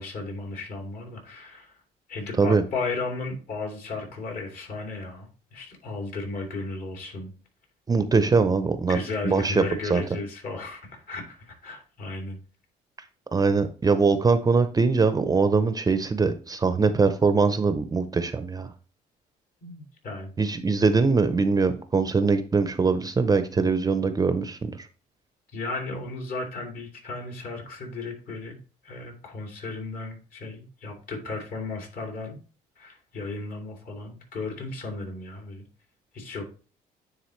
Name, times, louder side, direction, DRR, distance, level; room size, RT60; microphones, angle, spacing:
voice 1, 0.0-1.8 2.1-7.3 8.9-12.4 19.6-20.7 25.5-28.6 28.8-32.4 32.8-35.7 36.1-36.5, left 3 dB, 60° left, 1 dB, 2.8 m, -35 dB
voice 2, 7.9-9.0 9.2-9.6 9.9-10.0 13.3-18.7 20.4-24.7, right 4 dB, 20° right, 10 dB, 0.6 m, -22 dB
9.6 x 3.7 x 3.1 m, 0.37 s
cardioid pair, 110°, 17 cm